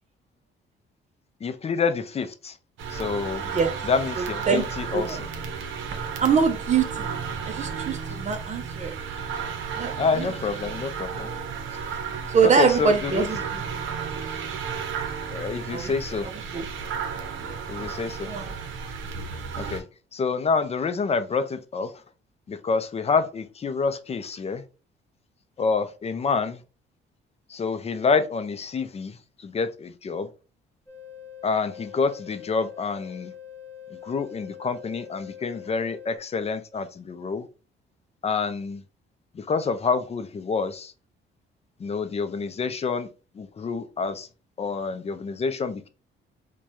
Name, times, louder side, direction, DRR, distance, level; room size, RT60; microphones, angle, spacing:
voice 1, 1.4-2.6 2.9-3.4 3.8-5.3 9.1-11.3 12.4-13.3 15.3-16.3 17.7-18.3 19.6-19.8 20.1-22.0 22.5-24.6 25.6-26.6 27.5-30.3 31.4-33.3 33.9-37.5 38.2-38.8 39.3-40.9 41.8-43.1 43.3-44.3 44.6-45.9, left 5 dB, 30° left, 0.5 m, -28 dB
sound 1, 2.8-19.8, right 6 dB, 80° right, 0.7 m, -33 dB
voice 2, 4.2-4.6 4.9-5.2 6.2-7.1 7.5-9.0 9.7-10.3 12.3-13.4 15.7-15.9 16.5-16.6 17.4-17.6 18.2-18.5, right 6 dB, 35° right, 0.5 m, -24 dB
sound 2, 30.9-36.2, left 9 dB, 10° left, 1.3 m, -43 dB
4.6 x 2.2 x 2.7 m
cardioid pair, 90°, 20 cm